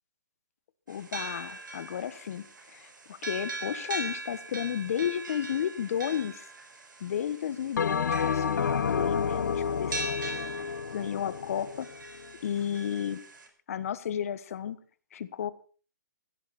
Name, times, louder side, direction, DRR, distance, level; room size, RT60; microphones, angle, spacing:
voice 1, 0.9-6.5 7.0-10.3 10.9-11.9 12.4-13.2 13.7-14.8 15.1-15.5, left 9 dB, 45° left, 14 dB, 1.5 m, -33 dB
sound 1, 0.9-13.5, right 2 dB, 80° right, 6.0 m, -41 dB
Bell, 7.8-12.4, left 6 dB, 65° left, 1.5 m, -30 dB
18.5 x 16.0 x 4.4 m, 0.40 s
hypercardioid pair, 155°, 10 cm